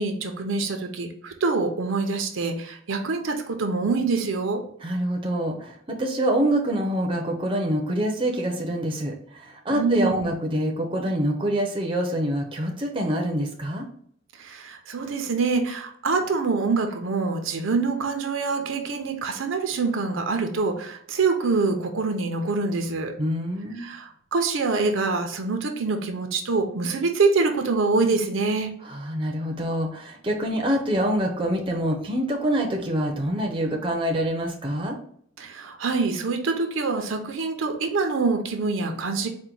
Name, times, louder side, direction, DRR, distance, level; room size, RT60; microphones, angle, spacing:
voice 1, 0.0-4.6 9.7-10.3 14.4-23.1 23.8-28.7 35.4-39.3, right 4 dB, 75° right, 5 dB, 0.6 m, -25 dB
voice 2, 4.8-13.9 23.2-23.8 28.8-35.0, right 1 dB, 25° right, 1 dB, 0.6 m, -26 dB
4.4 x 2.2 x 3.8 m, 0.64 s
head